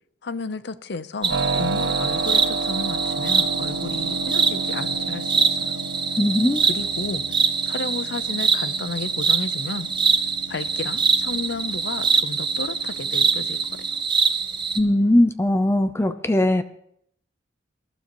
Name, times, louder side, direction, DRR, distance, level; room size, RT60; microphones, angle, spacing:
voice 1, 0.2-5.8 6.7-7.2 7.6-9.9 10.5-13.6, left 3 dB, 60° left, 0.7 m, -32 dB
sound 1, 1.2-14.8, right 5 dB, 25° right, 0.9 m, -24 dB
Keyboard (musical), 1.3-14.0, right 3 dB, 90° right, 0.8 m, -32 dB
voice 2, 6.2-6.6 14.7-16.6, left 1 dB, 15° left, 0.5 m, -19 dB
23.0 x 12.0 x 3.0 m
head